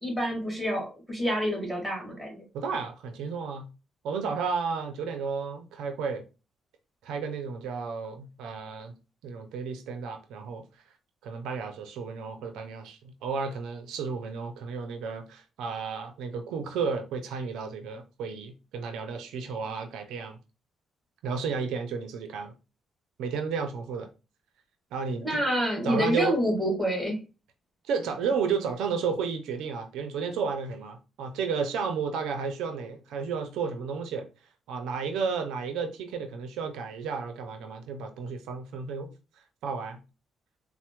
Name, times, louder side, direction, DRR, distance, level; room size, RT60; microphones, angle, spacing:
voice 1, 0.0-2.4 25.2-27.2, equal, ahead, 1.9 m, -27 dB
voice 2, 2.5-3.7 4.0-6.2 7.0-8.9 9.2-10.6 11.2-20.4 21.2-22.5 23.2-24.1 24.9-25.4 25.8-26.4 27.9-34.3 34.7-39.1 39.6-40.0, right 5 dB, 85° right, 0.5 m, -32 dB
4.1 x 2.1 x 2.9 m
cardioid pair, 90°, 0 cm